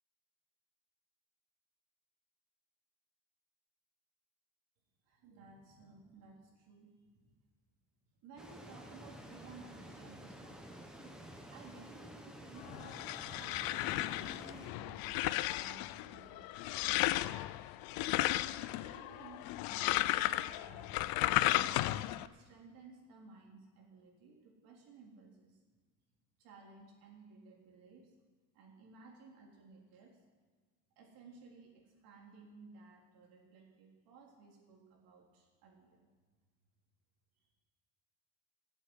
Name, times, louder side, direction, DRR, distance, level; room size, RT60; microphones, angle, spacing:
voice 1, 5.1-7.4 8.2-11.2 11.5-17.5 17.9-18.4 18.7-21.8 22.2-25.6 26.4-28.2 28.5-30.2 31.0-36.1, right 4 dB, 70° right, -1 dB, 3.6 m, -57 dB
sound 1, 8.4-14.7, equal, ahead, 1.2 m, -51 dB
sound 2, 12.6-22.3, left 16 dB, 75° left, 0.6 m, -34 dB
16.5 x 8.1 x 8.0 m, 1.4 s
cardioid pair, 165°, 36 cm